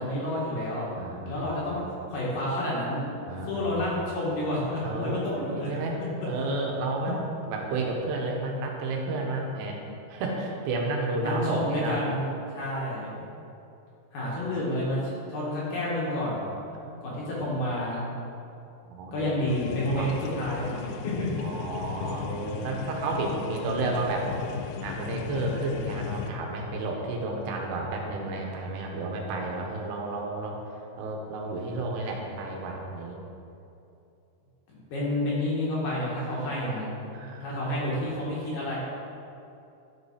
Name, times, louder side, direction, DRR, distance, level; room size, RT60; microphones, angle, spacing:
voice 1, 0.0-0.9 1.2-1.8 2.1-3.0 3.5-5.9 11.2-13.2 14.1-15.0 15.3-16.5 17.0-18.0 19.1-21.1 34.7-36.9 37.4-38.8, left 1 dB, 60° left, -6 dB, 3.1 m, -29 dB
voice 2, 1.0-1.5 3.3-3.7 4.8-6.0 6.3-7.2 7.5-9.8 10.1-12.0 13.0-13.2 16.8-17.0 17.4-17.5 18.9-19.3 19.9-20.1 21.4-24.3 24.8-30.6 31.0-33.2 37.1-37.6 38.3-38.4, right 2 dB, 80° right, 0 dB, 3.0 m, -31 dB
sound 1, 19.5-26.3, left 9 dB, 85° left, 2.5 m, -36 dB
11.5 x 5.3 x 4.9 m, 2.7 s
omnidirectional pair, 4.8 m